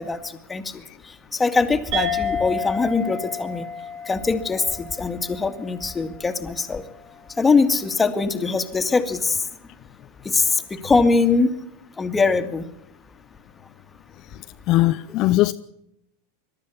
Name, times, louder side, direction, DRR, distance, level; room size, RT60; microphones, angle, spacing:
voice 1, 0.0-3.7 4.1-6.8 7.4-9.5 10.2-11.5 12.0-12.7, left 4 dB, 15° left, 2.2 m, -22 dB
sound 1, 1.9-6.8, left 4 dB, 55° right, 7.6 m, -31 dB
voice 2, 14.7-15.5, left 16 dB, 50° left, 0.7 m, -19 dB
22.0 x 12.5 x 10.0 m
hypercardioid pair, 95°, 0 cm